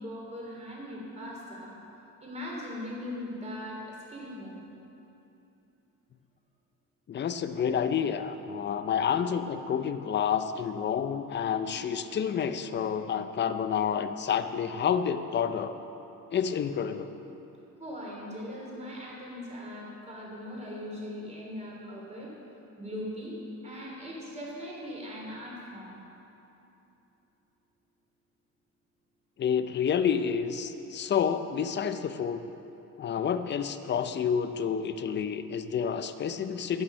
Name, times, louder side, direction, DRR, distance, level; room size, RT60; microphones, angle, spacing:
voice 1, 0.0-1.8 2.2-4.6 17.8-22.3 22.8-23.4 23.6-26.0, left 1 dB, 20° right, -3 dB, 3.1 m, -40 dB
voice 2, 7.1-15.7 16.3-17.1 29.4-32.4 33.0-36.8, left 7 dB, 35° left, 10 dB, 0.5 m, -29 dB
12.5 x 8.9 x 5.5 m, 3.0 s
cardioid pair, 130°, 34 cm